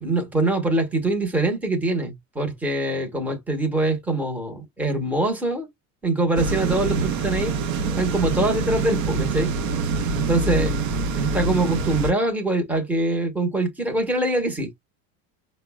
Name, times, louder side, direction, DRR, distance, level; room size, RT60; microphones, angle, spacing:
voice 1, 0.0-5.7 6.0-7.5 8.0-9.5 10.2-10.7 11.2-14.7, right 2 dB, 5° right, 0.7 m, -23 dB
sound 1, 6.3-12.1, right 4 dB, 85° right, 0.8 m, -25 dB
5.1 x 2.0 x 2.2 m
supercardioid pair, 145°, 39 cm